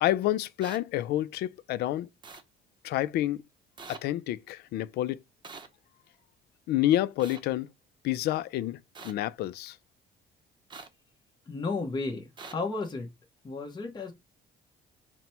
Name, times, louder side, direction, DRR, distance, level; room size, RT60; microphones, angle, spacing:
voice 1, 0.0-2.1 2.8-3.4 3.9-5.2 6.7-7.7 8.0-8.8 9.0-9.8, left 13 dB, 70° left, 0.4 m, -28 dB
sound 1, 0.6-0.8 2.2-2.4 3.8-4.0 5.4-5.7 7.2-7.4 9.0-9.1 10.7-10.9 12.4-12.5, right 4 dB, 25° right, 0.7 m, -44 dB
voice 2, 11.5-12.3 12.5-13.1 13.4-14.1, left 3 dB, 25° left, 0.9 m, -33 dB
4.1 x 2.1 x 4.3 m
cardioid pair, 110°, 17 cm